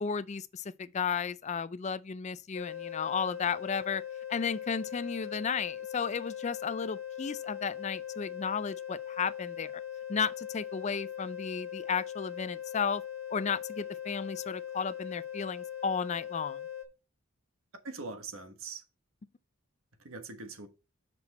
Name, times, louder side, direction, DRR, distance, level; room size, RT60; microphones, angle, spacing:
voice 1, 0.0-4.0 4.3-9.7 10.1-13.0 13.3-16.6, left 6 dB, 30° left, 0.4 m, -34 dB
sound 1, 2.5-16.8, left 10 dB, 65° left, 1.3 m, -40 dB
voice 2, 17.8-18.8 20.0-20.7, right 4 dB, 70° right, 1.3 m, -42 dB
6.1 x 5.9 x 4.2 m
head